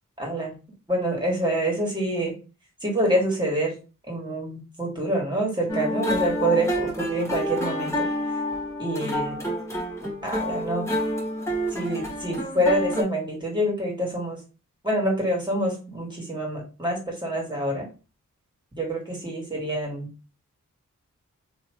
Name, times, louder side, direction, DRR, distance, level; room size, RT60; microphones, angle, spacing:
voice 1, 0.2-0.5 0.9-2.4 2.8-3.8 4.1-8.1 8.8-9.4 10.0-10.9 11.7-14.4 14.8-17.9 18.8-20.1, right 1 dB, 15° right, -2 dB, 2.0 m, -26 dB
sound 1, 5.7-13.0, equal, 10° left, 1.4 m, -28 dB
3.0 x 2.8 x 3.1 m, 0.32 s
cardioid pair, 40°, 33 cm